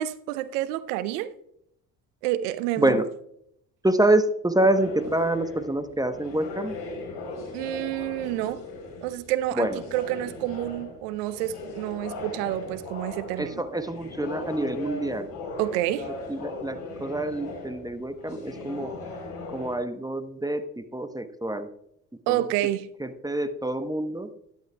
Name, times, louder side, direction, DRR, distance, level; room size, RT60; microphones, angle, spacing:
voice 1, 0.0-1.3 2.2-3.0 7.5-8.6 9.0-13.6 15.6-16.1 22.3-22.9, right 13 dB, 80° right, 0.7 m, -28 dB
voice 2, 2.8-3.1 3.8-6.8 9.6-9.8 13.4-15.3 16.3-18.9 19.5-21.7 22.3-22.4 23.0-24.3, right 1 dB, 10° right, 0.9 m, -26 dB
Ben Shewmaker - Nicene Creed, 4.7-19.8, left 3 dB, 60° left, 3.7 m, -39 dB
12.5 x 10.5 x 2.2 m
hypercardioid pair, 55°, 46 cm